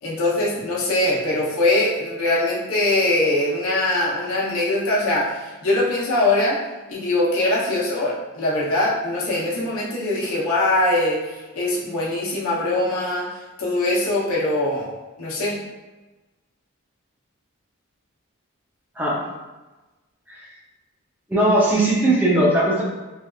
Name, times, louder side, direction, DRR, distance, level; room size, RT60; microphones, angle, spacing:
voice 1, 0.0-6.6 6.9-14.9 15.2-15.6, left 2 dB, 80° left, -6 dB, 0.8 m, -22 dB
voice 2, 21.3-22.8, right 1 dB, 10° right, -6 dB, 0.5 m, -18 dB
3.3 x 2.5 x 2.3 m, 1.1 s
head